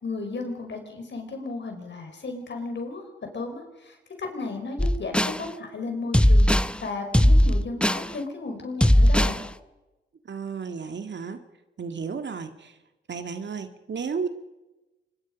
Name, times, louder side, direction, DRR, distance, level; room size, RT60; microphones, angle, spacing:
voice 1, 0.0-3.1 3.3-6.5 6.8-9.4, left 3 dB, 65° left, 4 dB, 5.2 m, -34 dB
sound 1, 4.8-5.4 6.1-6.7 7.1-8.1 8.8-9.4, left 1 dB, 5° left, 0.8 m, -18 dB
voice 2, 10.2-11.4 11.8-12.8 13.1-14.3, right 5 dB, 65° right, 7 dB, 2.1 m, -33 dB
25.0 x 22.5 x 5.3 m, 1.0 s
cardioid pair, 55°, 20 cm